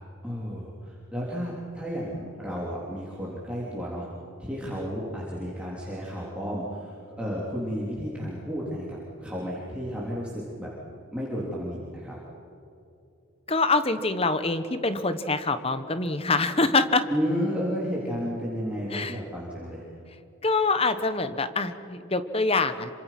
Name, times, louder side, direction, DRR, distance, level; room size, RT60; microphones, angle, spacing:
voice 1, 0.2-4.1 4.4-10.7 11.1-12.2 17.1-19.8, equal, 5° right, -6 dB, 3.5 m, -32 dB
voice 2, 13.5-17.0 18.9-19.2 20.4-22.9, left 3 dB, 25° left, 11 dB, 1.1 m, -25 dB
27.5 x 25.0 x 6.0 m, 2.7 s
head